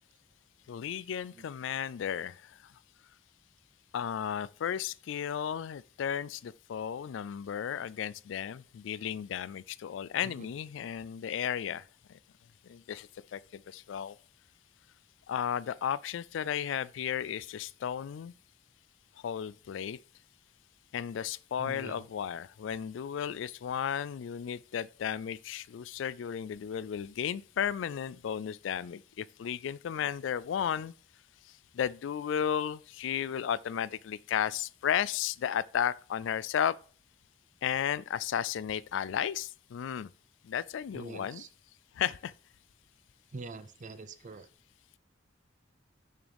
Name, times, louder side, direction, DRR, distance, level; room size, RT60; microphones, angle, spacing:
voice 1, 0.7-2.6 3.9-11.8 12.1-12.2 12.6-14.2 15.3-18.3 19.2-20.0 20.9-30.9 31.7-36.7 37.6-40.1 40.4-41.4 42.0-42.3, left 8 dB, 70° left, 0.3 m, -34 dB
voice 2, 21.6-22.1 40.9-41.5 43.3-44.5, right 3 dB, 40° right, 0.5 m, -44 dB
6.5 x 6.2 x 3.4 m
head